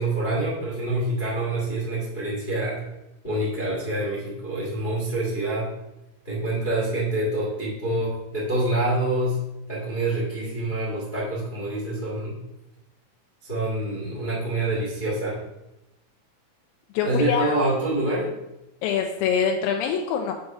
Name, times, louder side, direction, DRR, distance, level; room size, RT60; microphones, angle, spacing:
voice 1, 0.0-2.8 3.2-5.7 6.2-9.4 9.7-12.4 13.4-15.4 17.0-18.3, right 1 dB, 25° left, -5 dB, 1.0 m, -26 dB
voice 2, 16.9-17.5 18.8-20.3, left 7 dB, 85° left, 2 dB, 2.3 m, -24 dB
6.5 x 4.0 x 5.9 m, 0.93 s
omnidirectional pair, 4.1 m